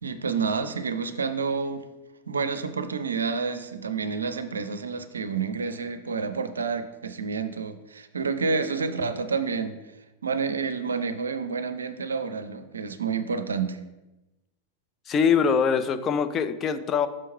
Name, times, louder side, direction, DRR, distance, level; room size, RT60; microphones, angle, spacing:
voice 1, 0.0-1.9 2.3-9.8 10.2-13.8, right 5 dB, 70° right, 10 dB, 0.5 m, -29 dB
voice 2, 15.1-17.1, left 6 dB, 25° left, 10 dB, 0.4 m, -23 dB
6.0 x 4.5 x 4.5 m, 1.0 s
figure-of-eight pair, 90°, 0 cm